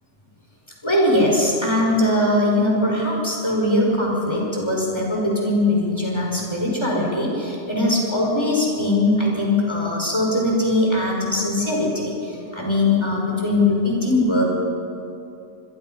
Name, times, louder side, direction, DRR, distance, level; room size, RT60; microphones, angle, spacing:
voice 1, 0.8-14.4, left 1 dB, 15° left, -2 dB, 5.4 m, -21 dB
27.5 x 21.5 x 5.5 m, 2.8 s
omnidirectional pair, 1.5 m